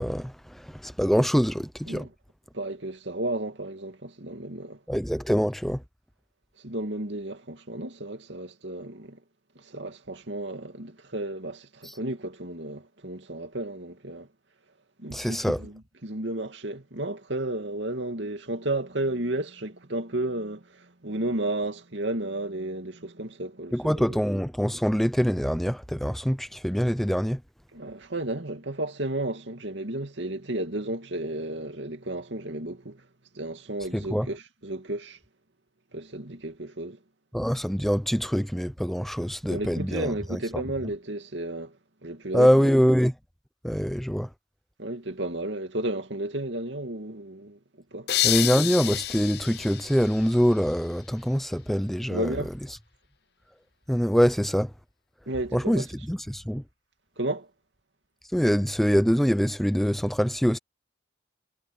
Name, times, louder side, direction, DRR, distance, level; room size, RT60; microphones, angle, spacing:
voice 1, 0.0-2.1 4.9-5.8 11.8-11.9 15.1-15.6 23.7-27.4 33.9-34.3 37.3-40.6 42.3-43.1 43.6-44.3 48.2-52.4 53.9-54.7 55.5-56.6 58.3-60.6, equal, ahead, 0.5 m, -24 dB
voice 2, 2.5-4.8 6.6-9.2 9.6-14.3 15.0-23.8 24.1-24.2 27.7-33.1 33.3-35.2 35.9-37.0 39.5-41.8 42.0-42.7 44.8-47.6 47.9-48.1 52.1-52.5 55.3-55.9 57.2-57.5, right 1 dB, 75° right, 2.5 m, -33 dB
sound 1, 48.1-50.9, left 14 dB, 55° left, 0.7 m, -29 dB
head